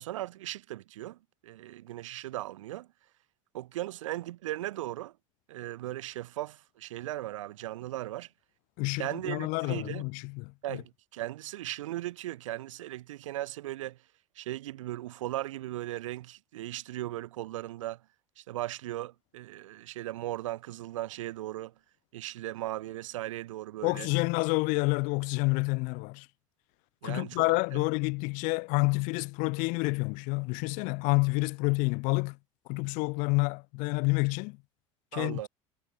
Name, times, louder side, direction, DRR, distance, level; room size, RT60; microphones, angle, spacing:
voice 1, 0.0-2.9 3.5-5.1 5.5-8.3 9.0-10.0 10.6-14.0 14.3-18.0 18.4-21.7 22.1-24.1 27.0-27.8 35.1-35.5, right 15 dB, 70° right, 1.4 m, -37 dB
voice 2, 8.8-10.8 23.8-26.3 27.0-32.4 32.7-34.6 35.1-35.5, left 29 dB, 55° left, 0.6 m, -29 dB
figure-of-eight pair, 75°, 17 cm